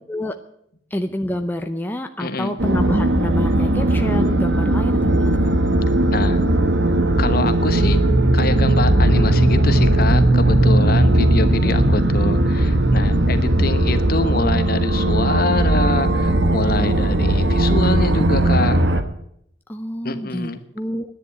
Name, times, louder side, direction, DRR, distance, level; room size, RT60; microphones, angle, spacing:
voice 1, 0.9-5.3 11.6-11.9 19.7-21.1, left 1 dB, 10° left, 5 dB, 0.6 m, -27 dB
voice 2, 2.2-2.5 6.1-6.4 7.2-8.0 8.3-18.8 20.0-20.6, left 2 dB, 50° left, 10 dB, 1.2 m, -25 dB
sound 1, 2.6-19.0, right 1 dB, 70° right, 1.3 m, -17 dB
10.5 x 10.5 x 10.0 m, 0.71 s
head